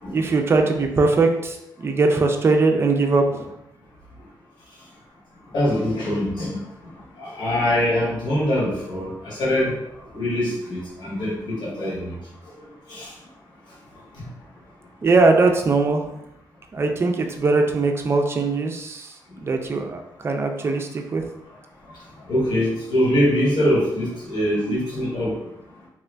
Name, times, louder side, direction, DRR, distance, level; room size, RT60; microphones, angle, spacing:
voice 1, 0.1-3.5 15.0-16.1 16.7-21.2, right 3 dB, 30° right, 4 dB, 0.4 m, -21 dB
voice 2, 5.5-6.6 7.2-9.7 10.1-12.2 12.9-13.1 14.2-14.3 22.3-25.3, left 1 dB, 70° left, -8 dB, 1.5 m, -23 dB
2.9 x 2.5 x 3.2 m, 0.84 s
wide cardioid pair, 130°, 8 cm